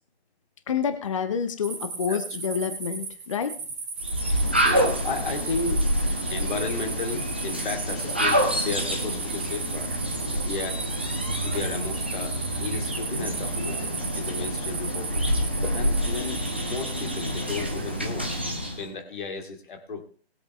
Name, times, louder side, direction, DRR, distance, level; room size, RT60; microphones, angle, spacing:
voice 1, 0.7-3.5, left 7 dB, 30° left, 9 dB, 0.8 m, -28 dB
sound 1, 1.6-18.1, right 5 dB, 25° right, 3.1 m, -36 dB
sound 2, 4.0-18.9, equal, 10° right, 0.5 m, -27 dB
voice 2, 4.1-9.9 10.4-10.8 11.4-20.0, left 4 dB, 50° left, 4 dB, 2.7 m, -34 dB
20.0 x 8.1 x 3.2 m, 0.42 s
figure-of-eight pair, 155°, 33 cm